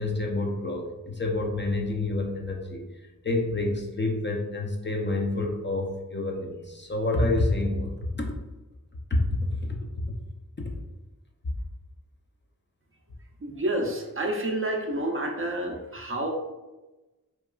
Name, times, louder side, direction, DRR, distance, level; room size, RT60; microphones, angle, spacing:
voice 1, 0.0-2.8 3.2-8.2 9.1-9.3 10.6-10.7, left 2 dB, 35° left, 0 dB, 0.4 m, -28 dB
voice 2, 13.4-16.3, right 1 dB, 40° right, 1 dB, 0.4 m, -29 dB
2.8 x 2.3 x 2.3 m, 1.1 s
wide cardioid pair, 40°, 34 cm